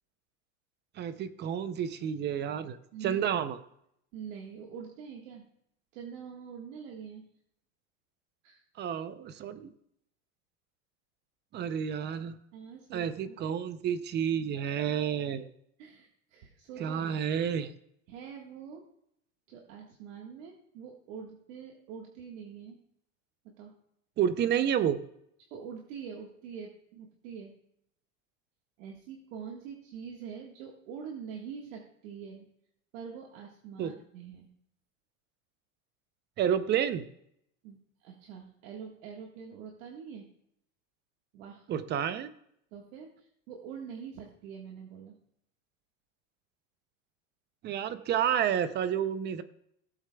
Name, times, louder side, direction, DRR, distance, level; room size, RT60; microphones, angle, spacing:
voice 1, 1.0-2.8 3.0-3.6 8.8-9.7 11.5-12.4 12.9-15.5 16.8-17.7 24.2-25.0 33.8-33.9 36.4-37.1 41.7-42.3 47.6-49.4, right 9 dB, 25° right, 13 dB, 0.5 m, -30 dB
voice 2, 4.1-5.5 5.9-7.2 8.4-8.6 12.5-13.3 15.8-17.1 18.1-18.8 19.5-22.8 23.4-23.7 25.4-27.5 28.8-32.5 32.9-34.5 37.6-40.3 41.3-41.7 42.7-45.2, right 7 dB, 70° right, 0 dB, 1.6 m, -45 dB
17.5 x 8.0 x 2.2 m, 0.73 s
supercardioid pair, 140°, 40 cm